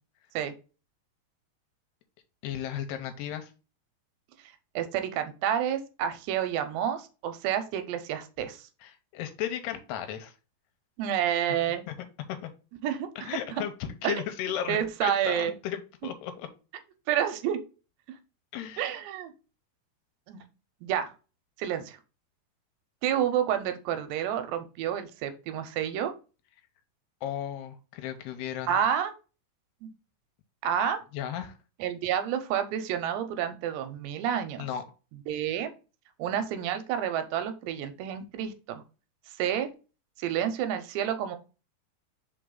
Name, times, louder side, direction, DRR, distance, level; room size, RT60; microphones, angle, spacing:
voice 1, 2.4-3.5 8.8-10.3 11.9-12.1 12.4-12.5 13.2-16.5 18.5-18.9 27.2-28.8 31.1-31.5 34.6-34.8, left 10 dB, 75° left, 8 dB, 2.7 m, -35 dB
voice 2, 4.8-8.7 11.0-11.8 12.8-13.6 14.0-14.2 14.7-15.5 17.1-17.6 18.8-19.3 20.3-20.4 20.8-21.1 21.6-22.0 23.0-26.1 28.7-29.1 29.8-29.9 30.6-31.0 31.8-34.7 35.3-35.7 36.2-38.8 39.4-39.7 40.2-41.4, right 9 dB, 85° right, 9 dB, 2.8 m, -29 dB
5.4 x 4.5 x 3.8 m, 0.33 s
omnidirectional pair, 5.0 m